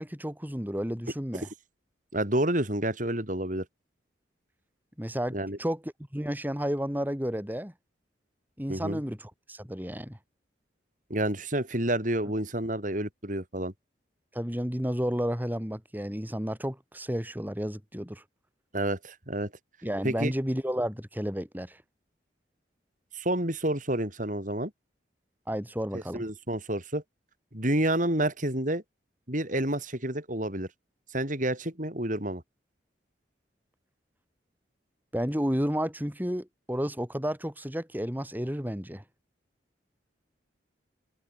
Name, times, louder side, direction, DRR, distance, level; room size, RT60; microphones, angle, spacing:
voice 1, 0.0-1.5 5.0-7.7 8.6-10.2 14.3-18.2 19.8-21.8 25.5-26.2 35.1-39.0, equal, 10° right, 4.3 m, -32 dB
voice 2, 2.1-3.6 5.3-5.6 8.7-9.0 11.1-13.7 18.7-19.5 20.0-20.3 23.1-24.7 25.9-27.0 27.5-28.8 29.3-30.7 31.1-32.4, right 1 dB, 45° right, 6.9 m, -29 dB
open air
head